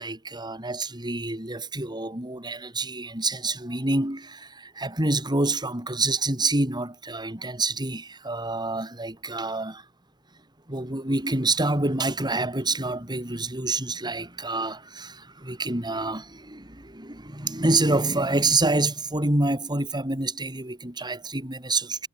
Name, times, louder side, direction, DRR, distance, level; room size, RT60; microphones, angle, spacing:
voice 1, 0.0-9.8 10.7-22.1, right 2 dB, 20° right, 4.8 m, -27 dB
head